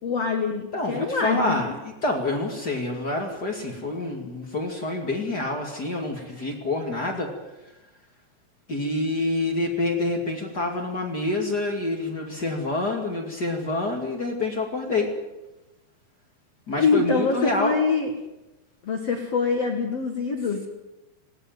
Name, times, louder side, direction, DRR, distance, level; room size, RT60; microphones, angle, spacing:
voice 1, 0.0-1.7 16.8-18.1 18.8-20.7, left 5 dB, 75° left, 4 dB, 1.4 m, -24 dB
voice 2, 0.7-7.3 8.7-15.1 16.7-17.8, left 2 dB, 45° left, 1 dB, 1.3 m, -27 dB
19.5 x 17.5 x 9.3 m, 0.99 s
omnidirectional pair, 6.0 m